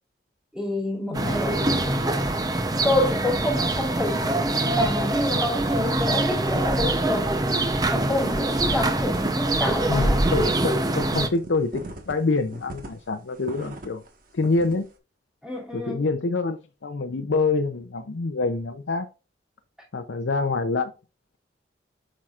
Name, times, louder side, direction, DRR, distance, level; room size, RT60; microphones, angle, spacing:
voice 1, 0.5-2.5 2.8-7.3 7.9-10.2 15.4-16.0, left 1 dB, 5° right, 2.8 m, -28 dB
voice 2, 1.1-1.5 9.9-14.0 14.3-14.9 15.7-19.1 19.9-20.9, left 3 dB, 80° left, 0.6 m, -26 dB
sound 1, 1.1-11.3, right 2 dB, 20° right, 0.7 m, -24 dB
sound 2, 4.7-5.3 5.6-5.9 6.2-14.1 14.4-14.8, right 1 dB, 50° right, 1.4 m, -39 dB
8.4 x 6.2 x 2.5 m
head